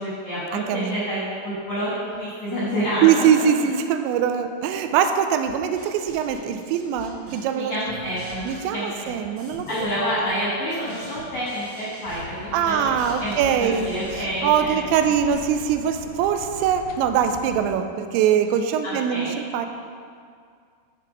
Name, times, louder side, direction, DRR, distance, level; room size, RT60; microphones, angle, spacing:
voice 1, 0.0-3.5 7.5-8.4 8.7-9.2 9.7-12.9 13.2-14.7 15.0-15.1 18.8-19.3, equal, 65° left, -7 dB, 1.6 m, -28 dB
voice 2, 0.5-1.0 3.0-7.7 8.5-9.9 10.1-10.2 12.5-19.7, right 8 dB, 90° right, 7 dB, 2.9 m, -22 dB
sound 1, 5.5-7.6 7.8-10.0 10.3-14.6, equal, 45° right, 1.8 m, -44 dB
sound 2, 12.1-17.7, left 6 dB, 85° left, 2.3 m, -41 dB
10.0 x 4.6 x 5.1 m, 2.2 s
omnidirectional pair, 5.1 m